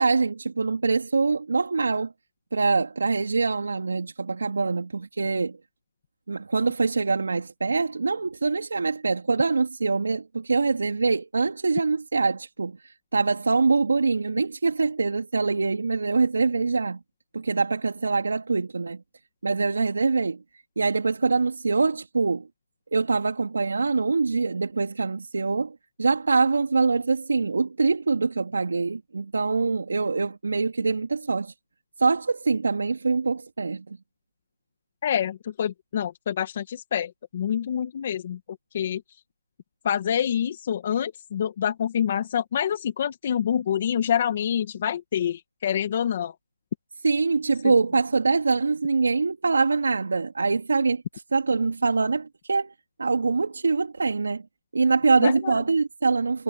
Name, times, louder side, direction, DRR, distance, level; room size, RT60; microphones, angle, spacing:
voice 1, 0.0-2.1 2.5-5.6 6.3-17.0 17.3-19.0 19.4-20.4 20.8-22.5 22.9-31.5 32.0-34.0 47.0-52.7 53.0-54.4 54.7-56.4, right 4 dB, 70° right, 3.2 m, -24 dB
voice 2, 35.0-38.4 38.7-39.0 39.8-46.3 55.2-55.5, left 9 dB, 30° left, 2.0 m, -26 dB
hypercardioid pair, 170°, 0 cm